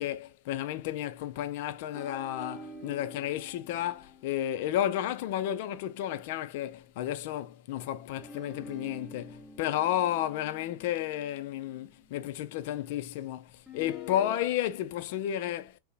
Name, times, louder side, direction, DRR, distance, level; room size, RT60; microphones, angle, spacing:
voice 1, 0.0-15.8, left 12 dB, 50° left, 0.3 m, -32 dB
sound 1, 1.9-6.5 8.2-12.3 13.7-14.4, left 3 dB, 5° left, 0.7 m, -48 dB
2.6 x 2.0 x 2.4 m
figure-of-eight pair, 90°, 0 cm